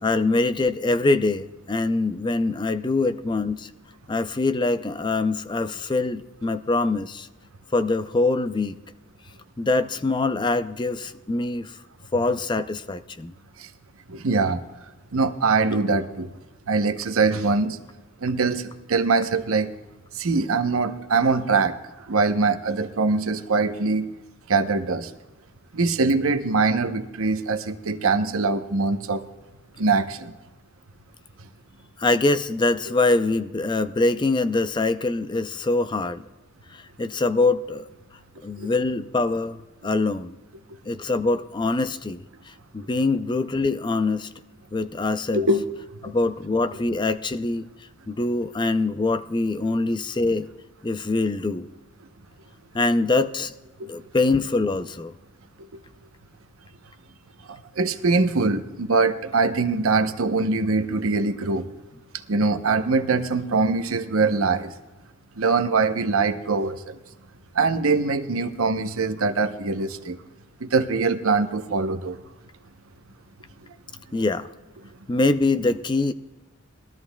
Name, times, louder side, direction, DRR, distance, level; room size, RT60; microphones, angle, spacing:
voice 1, 0.0-3.7 4.1-7.3 7.7-8.8 9.6-11.8 12.1-13.3 32.0-36.2 36.7-37.9 38.4-40.4 40.9-42.2 42.7-44.3 44.7-45.5 46.0-47.6 48.1-50.5 50.8-51.7 52.7-53.5 53.9-55.1 74.1-74.5 75.1-76.1, left 3 dB, 20° left, 12 dB, 0.4 m, -24 dB
voice 2, 14.1-14.6 15.1-16.3 16.7-17.8 18.2-19.7 20.1-21.7 22.1-24.1 24.5-25.1 25.7-29.3 29.8-30.3 38.6-38.7 45.3-45.6 53.8-53.9 57.5-61.7 62.3-64.7 65.4-67.0 67.5-70.2 70.6-72.2, right 4 dB, 85° right, 9 dB, 0.8 m, -23 dB
21.0 x 13.5 x 2.3 m, 1.2 s
head